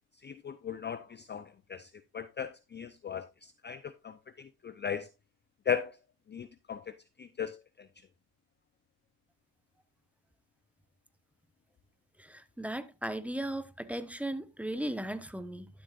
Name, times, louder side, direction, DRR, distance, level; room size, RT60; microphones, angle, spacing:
voice 1, 0.2-5.1 5.7-6.0 6.3-7.9, left 7 dB, 25° left, 0.6 m, -38 dB
voice 2, 12.2-15.7, right 1 dB, 5° right, 1.1 m, -37 dB
12.0 x 7.7 x 2.5 m
supercardioid pair, 80°, 47 cm